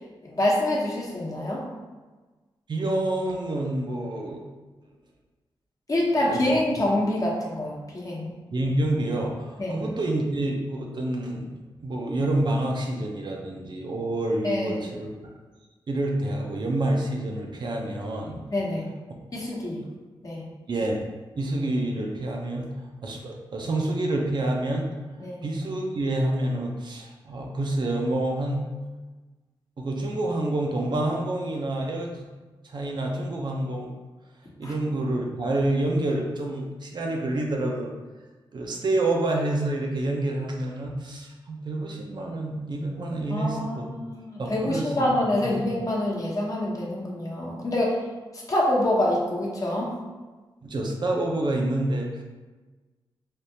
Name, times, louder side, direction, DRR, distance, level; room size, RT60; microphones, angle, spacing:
voice 1, 0.3-1.6 5.9-8.3 9.6-9.8 14.4-14.8 18.5-18.9 19.3-19.8 20.2-20.4 25.2-25.4 34.6-34.7 43.3-48.0 48.3-49.9, left 1 dB, 40° left, -3 dB, 0.9 m, -26 dB
voice 2, 2.7-4.4 6.3-6.5 8.5-11.5 11.8-15.4 15.9-18.4 20.7-21.0 21.4-22.7 23.0-24.9 25.4-28.6 29.8-32.3 32.6-33.9 34.6-37.9 38.5-43.9 44.4-45.1 50.6-52.2, right 1 dB, 55° right, 0 dB, 0.6 m, -28 dB
3.5 x 2.5 x 2.7 m, 1.3 s
cardioid pair, 65°, 9 cm